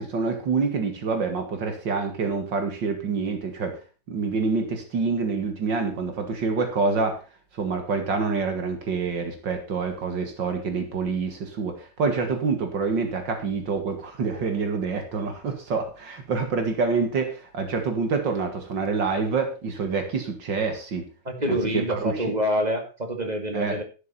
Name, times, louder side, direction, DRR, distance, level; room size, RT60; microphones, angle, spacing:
voice 1, 0.0-3.8 4.1-7.2 7.6-21.1 21.5-22.3 23.5-23.8, right 4 dB, 75° right, 6 dB, 2.5 m, -27 dB
voice 2, 21.2-23.8, equal, 20° right, 4 dB, 2.2 m, -26 dB
12.0 x 9.6 x 4.1 m, 0.32 s
omnidirectional pair, 2.0 m